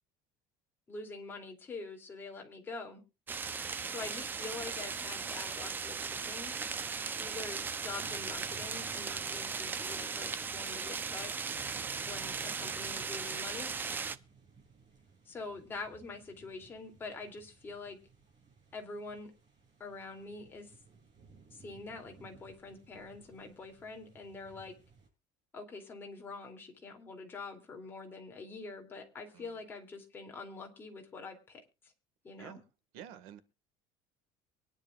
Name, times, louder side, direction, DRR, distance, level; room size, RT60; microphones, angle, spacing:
voice 1, 0.9-3.0 3.9-6.5 7.2-11.3 12.1-13.7 15.3-18.0 18.7-19.3 19.8-20.7 21.5-24.7 25.5-31.9 32.2-32.6, left 3 dB, 20° left, 2 dB, 2.7 m, -45 dB
sound 1, 3.3-14.2, right 5 dB, 15° right, 0.6 m, -37 dB
sound 2, 7.0-25.1, right 5 dB, 35° right, 7.4 m, -60 dB
voice 2, 11.7-12.5 29.3-29.6 32.4-32.6 32.9-33.4, right 10 dB, 85° right, 12 dB, 1.7 m, -51 dB
23.5 x 10.5 x 2.4 m, 0.29 s
cardioid pair, 170°, 12 cm